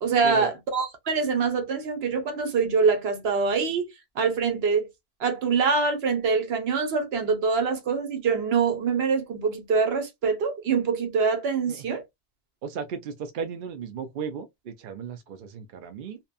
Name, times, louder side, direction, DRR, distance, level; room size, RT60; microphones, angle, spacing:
voice 1, 0.0-3.9 4.2-4.9 5.2-12.0, right 5 dB, 80° right, 1.0 m, -24 dB
voice 2, 12.6-16.2, right 6 dB, 60° right, 0.7 m, -35 dB
2.8 x 2.1 x 2.3 m
omnidirectional pair, 1.0 m